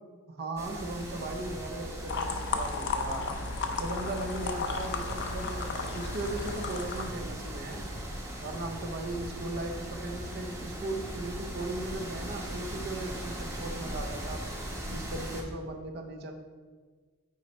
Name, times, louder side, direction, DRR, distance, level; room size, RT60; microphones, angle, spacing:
voice 1, 0.3-3.3 3.8-7.9 8.4-14.4 14.9-16.3, right 2 dB, 45° right, 4 dB, 0.6 m, -37 dB
sound 1, 0.6-15.4, right 1 dB, 15° right, 0.9 m, -39 dB
sound 2, 2.1-7.1, left 3 dB, 55° left, 0.5 m, -34 dB
9.5 x 3.2 x 4.1 m, 1.5 s
head